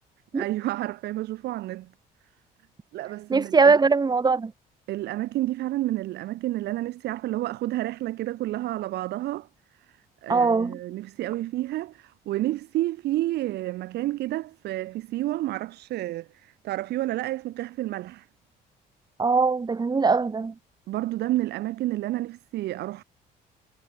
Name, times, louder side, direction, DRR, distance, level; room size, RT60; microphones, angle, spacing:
voice 1, 0.3-1.9 2.9-3.8 4.9-9.5 9.9-18.3 20.9-23.0, right 16 dB, 75° right, 4.9 m, -30 dB
voice 2, 3.3-4.5 10.3-10.8 19.2-20.5, right 4 dB, 25° right, 2.1 m, -21 dB
cardioid pair, 110°, 17 cm